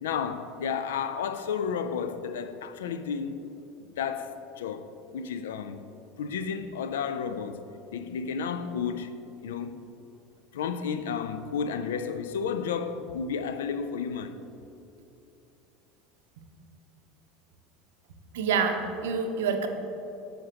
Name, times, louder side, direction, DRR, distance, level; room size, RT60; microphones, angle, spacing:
voice 1, 0.0-3.5 4.0-5.8 6.2-7.7 7.9-9.8 10.5-14.4, left 6 dB, 80° left, 0.3 m, -32 dB
voice 2, 18.3-19.7, right 5 dB, 75° right, 0.6 m, -27 dB
7.6 x 5.8 x 2.9 m
hypercardioid pair, 80°, 0 cm